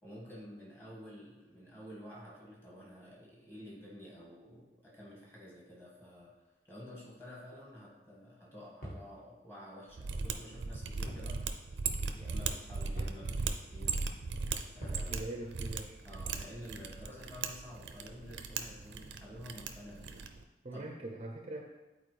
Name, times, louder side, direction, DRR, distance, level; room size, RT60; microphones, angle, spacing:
voice 1, 0.0-6.3 6.6-11.5 12.2-14.0 14.7-15.5 16.0-20.2 20.7-20.8, equal, 15° left, -4 dB, 1.7 m, -50 dB
sound 1, 8.8-9.1 11.1-11.3 11.6-11.7 13.0-13.3 14.8-15.1, equal, 50° left, 1.6 m, -44 dB
Mechanisms, 9.9-20.4, right 4 dB, 90° right, 0.5 m, -38 dB
voice 2, 15.1-16.0 20.6-21.7, right 2 dB, 35° right, 2 dB, 0.5 m, -42 dB
9.1 x 4.2 x 3.3 m, 1.1 s
head